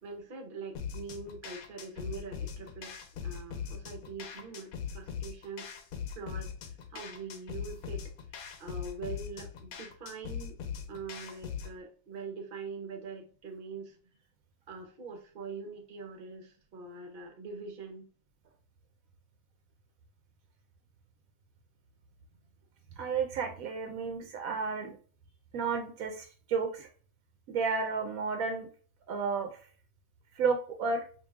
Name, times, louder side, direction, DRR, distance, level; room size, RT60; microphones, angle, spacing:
voice 1, 0.0-5.7 6.1-10.6 10.9-14.0 14.7-18.1, right 4 dB, 45° right, 3 dB, 0.8 m, -43 dB
sound 1, 0.7-11.8, left 7 dB, 90° left, 1.1 m, -41 dB
voice 2, 23.0-25.0 25.5-26.9 27.5-28.7 29.1-29.5 30.4-31.0, right 5 dB, 80° right, 4 dB, 1.0 m, -32 dB
5.2 x 2.7 x 2.2 m, 0.43 s
omnidirectional pair, 1.5 m